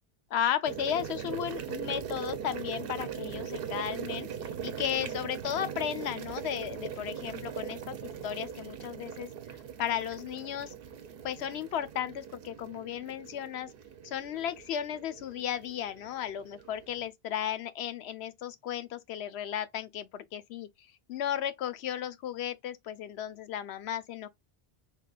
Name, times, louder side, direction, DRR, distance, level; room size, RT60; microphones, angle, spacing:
voice 1, 0.3-4.3 4.6-9.3 9.8-10.7 11.2-13.7 14.0-24.3, left 10 dB, 85° left, 0.9 m, -34 dB
sound 1, 0.6-17.1, right 8 dB, 65° right, 0.7 m, -40 dB
3.8 x 3.6 x 2.2 m
omnidirectional pair, 1.1 m